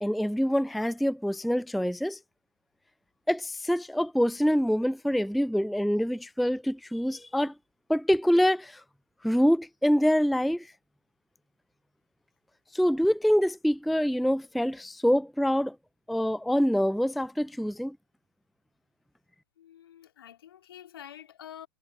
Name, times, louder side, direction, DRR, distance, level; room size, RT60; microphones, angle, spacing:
voice 1, 0.0-2.2 3.3-7.5 7.9-8.8 9.2-10.7 12.7-15.8 16.1-18.0, equal, ahead, 0.4 m, -25 dB
voice 2, 19.6-21.7, left 10 dB, 70° left, 2.5 m, -47 dB
hypercardioid pair, 110°, 13 cm